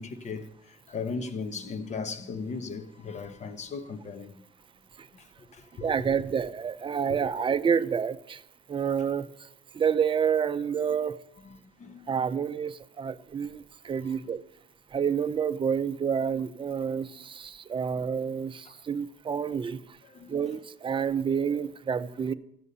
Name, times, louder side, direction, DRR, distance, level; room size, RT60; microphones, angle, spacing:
voice 1, 0.0-4.4 5.1-5.2 5.5-5.9 7.1-7.3 11.4-12.0 14.0-14.2 18.7-18.8 20.1-20.5, left 4 dB, 45° left, 1.2 m, -37 dB
voice 2, 5.8-8.4 8.7-9.3 9.7-11.2 12.1-14.4 14.9-19.8 20.3-22.3, right 7 dB, 30° right, 0.6 m, -28 dB
13.5 x 8.4 x 5.5 m
cardioid pair, 110°, 17 cm